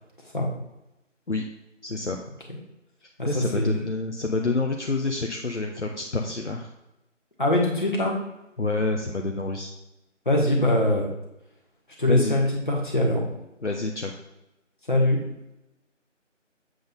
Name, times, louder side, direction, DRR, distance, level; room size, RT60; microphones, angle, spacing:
voice 1, 1.8-2.2 3.3-6.7 8.6-9.7 12.1-12.4 13.6-14.1, left 3 dB, 65° left, 2 dB, 0.9 m, -28 dB
voice 2, 3.2-3.8 7.4-8.2 10.3-11.1 12.0-13.2 14.9-15.2, left 1 dB, 40° left, -1 dB, 1.7 m, -22 dB
7.8 x 3.8 x 5.3 m, 0.92 s
figure-of-eight pair, 170°, 38 cm